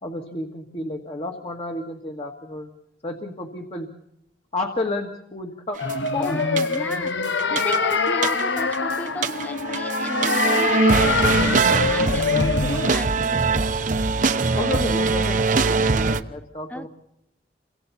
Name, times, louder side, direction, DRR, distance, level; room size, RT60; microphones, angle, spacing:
voice 1, 0.0-2.7 3.0-3.9 4.5-6.6 12.3-12.5 14.5-16.9, left 2 dB, 35° left, 1 dB, 1.8 m, -31 dB
sound 1, 5.8-12.9, left 4 dB, 75° left, 1.0 m, -24 dB
sound 2, 5.9-6.1 6.6-7.1 7.4-8.8 9.1-16.2, right 4 dB, 45° right, 0.9 m, -22 dB
voice 2, 6.2-7.2 7.5-13.5 16.7-16.9, equal, 10° left, 9 dB, 1.2 m, -34 dB
29.0 x 25.0 x 4.2 m, 0.80 s
head